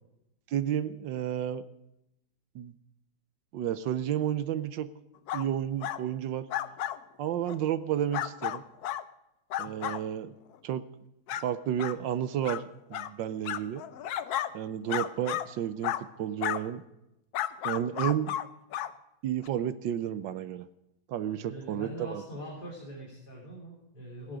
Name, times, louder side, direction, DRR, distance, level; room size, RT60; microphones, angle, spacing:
voice 1, 0.5-1.6 2.5-2.7 3.5-4.9 5.3-6.5 7.2-8.6 9.6-10.3 10.6-10.9 11.4-13.8 14.5-16.8 17.6-18.3 19.2-20.7 21.1-22.2, right 10 dB, 70° right, 14 dB, 1.3 m, -31 dB
sound 1, 5.3-5.5 5.8-6.0 6.5-7.0 7.4-7.6 8.1-9.0 9.5-10.0 10.5-10.6 11.3-11.4 11.8-11.9 12.4-12.6 12.9-13.1 13.4-14.5 14.9-15.5 15.8-16.0 16.4-16.6 17.3-18.5 18.7-18.9 19.4-19.5, left 12 dB, 70° left, 1.0 m, -32 dB
voice 2, 21.2-24.4, equal, 50° left, -5 dB, 4.3 m, -43 dB
16.5 x 10.5 x 5.0 m, 0.88 s
omnidirectional pair, 2.2 m